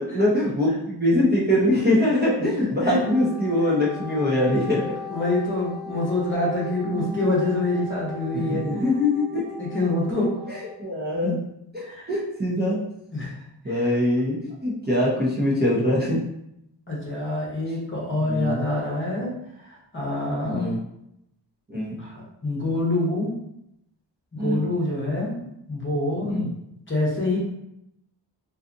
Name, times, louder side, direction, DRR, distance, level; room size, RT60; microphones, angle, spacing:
voice 1, 0.0-4.8 6.9-7.2 8.3-9.4 10.5-11.4 11.7-12.8 13.6-14.4 14.6-16.2 18.2-18.6 20.4-20.8 21.7-21.9 24.4-24.6 26.2-26.5, left 1 dB, 20° right, -6 dB, 0.7 m, -23 dB
Wind instrument woodwind instrument, 2.7-10.8, left 4 dB, ahead, 0.4 m, -38 dB
voice 2, 5.1-8.8 9.6-10.3 11.2-11.4 11.8-12.1 13.1-13.3 13.7-13.9 16.9-19.3 19.6-20.7 22.0-23.3 24.3-26.5 26.9-27.5, left 2 dB, 25° left, -4 dB, 1.0 m, -26 dB
2.6 x 2.4 x 2.5 m, 0.79 s
cardioid pair, 75°, 44 cm